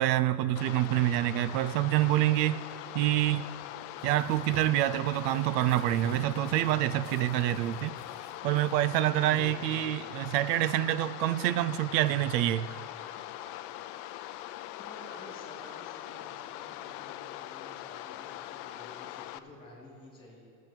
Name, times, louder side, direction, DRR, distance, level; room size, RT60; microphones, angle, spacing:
voice 1, 0.0-2.6 2.9-3.5 4.0-8.0 8.4-12.7, right 14 dB, 85° right, 0.6 m, -27 dB
sound 1, 0.6-19.4, left 14 dB, 55° left, 0.5 m, -42 dB
sound 2, 3.3-10.4, right 6 dB, 30° right, 0.4 m, -52 dB
voice 2, 9.2-10.2 14.8-20.4, left 1 dB, 10° left, 3.0 m, -50 dB
Ben Shewmaker - Noisy Dog, 10.6-10.9 12.7-13.5 13.9-14.0 15.1-15.2 15.6-16.2, right 2 dB, 60° right, 2.4 m, -56 dB
16.0 x 8.4 x 4.4 m
cardioid pair, 155°, 47 cm